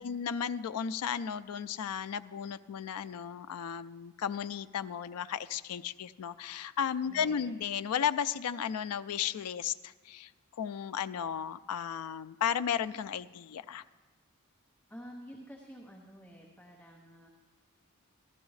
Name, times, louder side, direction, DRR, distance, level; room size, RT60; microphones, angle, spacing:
voice 1, 0.0-13.8, left 8 dB, 85° left, 13 dB, 0.4 m, -34 dB
voice 2, 7.0-7.5 14.9-17.3, equal, 5° left, -3 dB, 0.8 m, -50 dB
14.0 x 12.5 x 3.2 m, 1.4 s
head